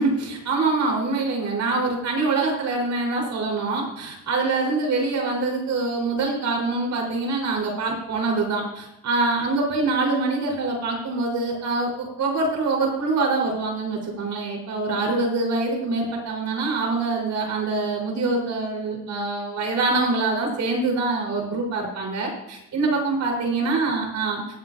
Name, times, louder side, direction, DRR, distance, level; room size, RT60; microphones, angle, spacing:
voice 1, 0.0-24.4, right 3 dB, 70° right, -1 dB, 4.9 m, -24 dB
22.5 x 8.0 x 2.9 m, 0.84 s
cardioid pair, 90°, 30 cm